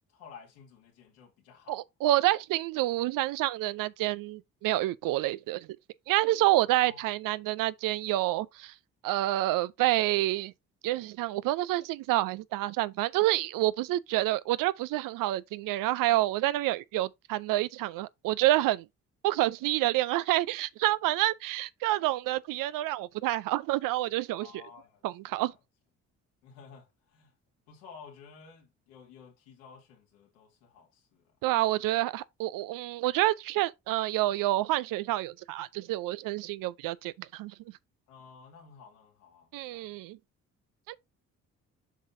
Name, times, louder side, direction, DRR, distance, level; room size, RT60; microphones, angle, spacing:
voice 1, 0.1-1.8 6.8-7.1 24.4-25.0 26.4-27.3 27.7-31.2 38.1-40.0, left 6 dB, 90° left, 2.5 m, -53 dB
voice 2, 1.7-5.7 6.1-8.7 9.0-10.5 10.8-18.8 19.2-24.6 25.0-25.5 31.4-37.5 39.5-40.2 40.9-41.0, right 16 dB, 70° right, 0.6 m, -28 dB
7.3 x 5.6 x 2.7 m
supercardioid pair, 60°, 34 cm